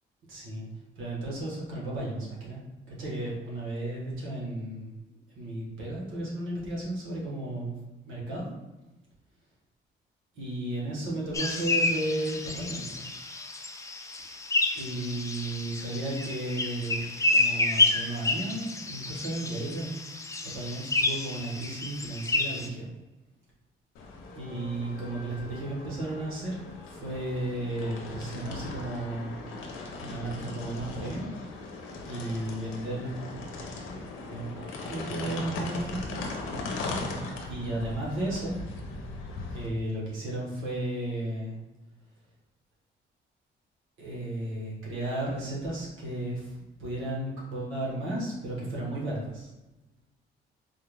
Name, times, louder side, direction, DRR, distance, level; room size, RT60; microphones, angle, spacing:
voice 1, 0.3-0.7 0.9-2.6 2.9-7.7 8.0-8.5 10.3-13.0 14.7-19.9 20.4-22.9 24.3-26.6 26.9-29.3 30.0-31.3 32.1-33.1 34.3-34.6 34.9-36.2 37.4-38.6 39.5-41.6 44.0-49.5, right 1 dB, 90° right, -4 dB, 1.3 m, -34 dB
sound 1, 11.3-22.7, left 2 dB, 15° left, 0.4 m, -29 dB
sound 2, 23.9-39.7, left 3 dB, 90° left, 0.7 m, -39 dB
4.2 x 2.4 x 3.3 m, 1.1 s
cardioid pair, 90°, 20 cm